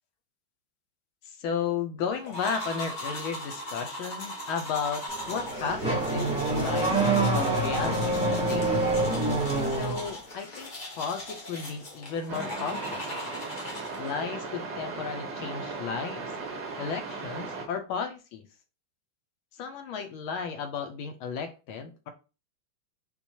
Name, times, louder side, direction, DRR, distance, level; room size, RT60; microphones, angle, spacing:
voice 1, 1.3-8.8 9.6-13.0 14.0-16.3 16.8-18.4 19.6-22.1, left 6 dB, 80° left, 7 dB, 1.4 m, -34 dB
sound 1, 2.2-14.2, left 1 dB, 60° left, 0.5 m, -39 dB
Car / Accelerating revving vroom, 5.1-10.1, right 2 dB, 10° right, 0.3 m, -26 dB
sound 2, 12.3-17.7, right 4 dB, 60° right, 1.1 m, -37 dB
4.4 x 2.3 x 2.7 m, 0.31 s
omnidirectional pair, 2.4 m